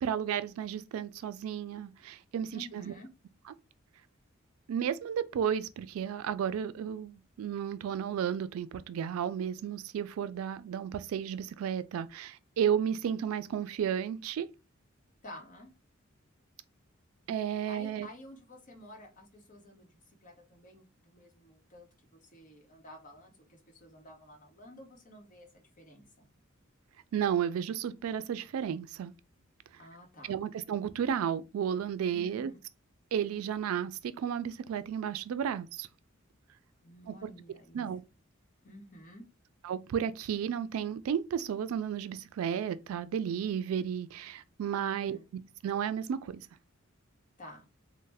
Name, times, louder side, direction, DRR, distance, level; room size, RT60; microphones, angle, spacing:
voice 1, 0.0-2.9 4.7-14.5 17.3-18.1 27.1-29.1 30.3-32.5 33.1-35.9 37.1-37.3 37.7-38.0 39.6-45.2 45.6-46.4, right 8 dB, 85° right, 0.3 m, -33 dB
voice 2, 2.5-3.1 15.2-15.7 17.6-26.3 29.8-30.3 32.1-32.6 36.8-37.8 38.6-39.2 44.8-45.2 47.4-47.7, left 1 dB, 40° left, 0.9 m, -51 dB
3.1 x 2.1 x 3.3 m
head